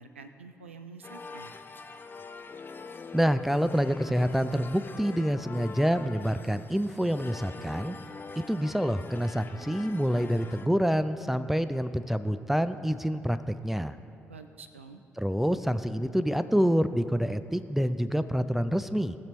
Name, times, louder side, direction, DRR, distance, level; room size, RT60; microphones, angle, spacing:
voice 1, 0.0-1.5 14.3-15.0, right 4 dB, 85° right, 8 dB, 0.4 m, -47 dB
sound 1, 1.0-10.7, left 4 dB, 30° left, 0.7 m, -44 dB
voice 2, 3.1-8.0 8.4-14.0 15.2-19.2, equal, 5° right, 12 dB, 0.4 m, -27 dB
19.0 x 6.7 x 3.0 m, 2.6 s
figure-of-eight pair, 40°, 7 cm